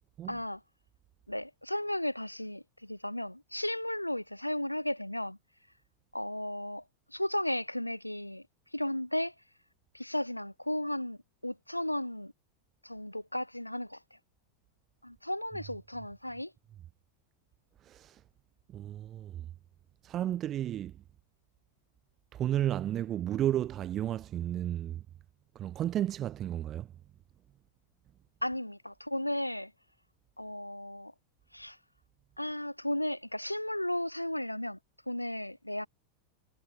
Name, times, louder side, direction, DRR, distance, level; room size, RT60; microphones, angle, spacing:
voice 1, 0.3-0.6 1.3-5.4 6.1-6.8 7.1-8.4 8.7-9.3 9.9-12.3 12.8-14.2 15.0-16.5 28.4-29.7 30.4-31.1 31.5-31.8 32.4-34.8 35.1-35.9, left 1 dB, 90° left, 0.8 m, -34 dB
voice 2, 17.8-18.2 18.7-19.5 20.0-20.9 22.3-25.0 25.5-26.9, right 11 dB, 30° right, 0.9 m, -33 dB
figure-of-eight pair, 90°, 0 cm